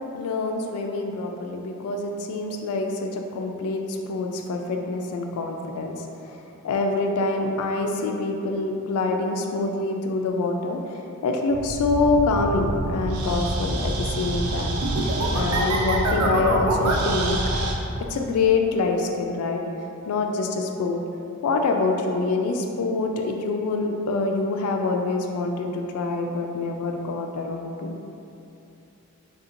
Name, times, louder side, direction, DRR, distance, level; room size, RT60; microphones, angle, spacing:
voice 1, 0.1-6.0 6.6-10.8 11.2-14.8 15.3-17.4 18.1-19.6 20.1-21.0 21.4-27.9, left 3 dB, 80° left, 4 dB, 0.3 m, -25 dB
sound 1, 11.5-17.7, right 1 dB, 80° right, 0.4 m, -25 dB
3.5 x 2.8 x 2.5 m, 2.8 s
head